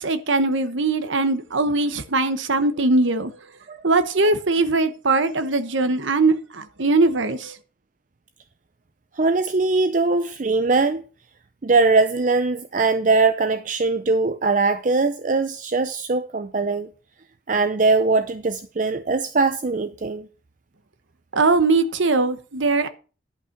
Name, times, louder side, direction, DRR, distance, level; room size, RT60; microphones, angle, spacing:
voice 1, 0.0-3.3 3.8-7.6 21.3-22.9, right 3 dB, 80° right, 1.0 m, -21 dB
voice 2, 9.2-11.0 11.6-16.9 17.5-20.3, right 3 dB, 40° right, 0.5 m, -21 dB
11.0 x 5.6 x 5.8 m
head